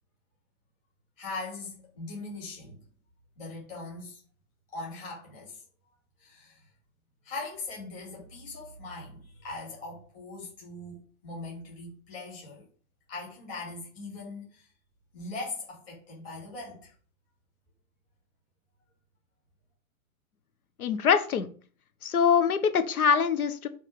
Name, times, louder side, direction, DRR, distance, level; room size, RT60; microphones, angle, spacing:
voice 1, 1.2-2.8 3.4-4.2 4.7-5.6 6.2-6.7 7.2-12.7 13.1-14.7 15.1-16.9, left 3 dB, 20° left, 3.1 m, -40 dB
voice 2, 20.8-21.5 22.0-23.7, left 6 dB, 75° left, 1.4 m, -24 dB
7.2 x 3.7 x 5.3 m
hypercardioid pair, 180°, 43 cm